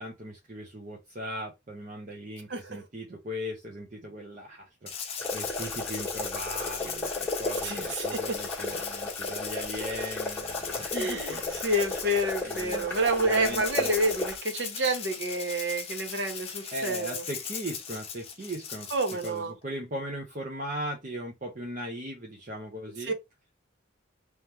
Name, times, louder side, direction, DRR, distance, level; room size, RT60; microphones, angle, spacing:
voice 1, 0.0-11.6 12.4-13.0 13.2-13.9 16.7-23.1, equal, 40° right, 0.8 m, -38 dB
voice 2, 2.5-2.8 7.6-8.4 10.9-17.2 18.9-19.5 23.0-23.1, right 1 dB, 65° right, 1.0 m, -29 dB
Rattle (instrument), 4.9-19.4, left 7 dB, 30° left, 0.9 m, -38 dB
sound 1, 5.2-14.4, left 2 dB, 10° left, 1.5 m, -34 dB
3.1 x 3.0 x 3.5 m
head